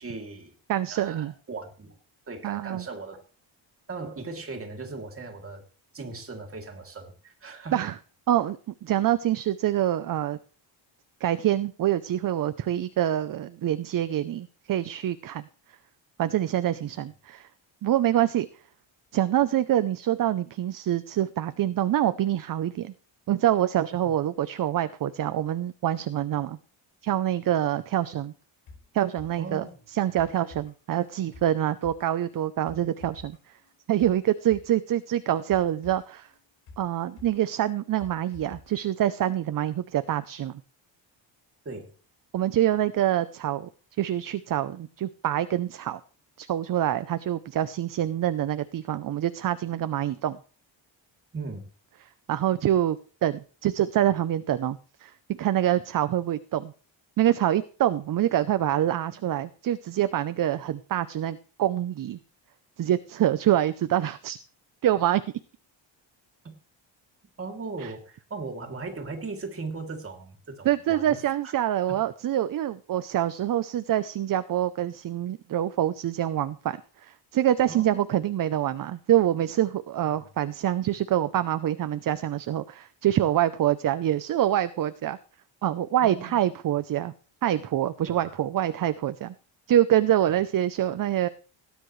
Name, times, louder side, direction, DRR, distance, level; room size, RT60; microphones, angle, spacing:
voice 1, 0.0-0.5 0.9-2.0 2.3-3.2 3.9-5.6 5.9-7.8 29.4-29.8 41.6-41.9 51.3-51.6 66.4-66.5 67.4-71.2 71.4-71.5 71.9-72.0 77.7-78.1 80.1-80.3 86.0-86.4 88.1-88.4 88.7-88.9, right 3 dB, 30° right, 2.8 m, -38 dB
voice 2, 0.7-1.3 2.4-2.8 7.7-7.9 8.3-10.4 11.2-15.4 16.2-17.5 17.8-18.5 19.1-22.9 23.3-26.6 27.0-28.3 28.9-29.6 29.9-33.4 33.9-36.3 36.8-40.6 42.3-43.7 44.0-46.0 46.4-50.4 52.3-53.0 53.2-56.7 57.2-62.2 62.8-64.4 64.8-65.2 67.8-67.9 70.6-85.2 85.6-87.1 87.4-89.3 89.7-91.3, right 12 dB, 45° right, 0.6 m, -26 dB
sound 1, 28.7-38.7 39.0-39.1, left 3 dB, 85° left, 5.3 m, -51 dB
17.5 x 10.0 x 3.2 m
cardioid pair, 150°, 46 cm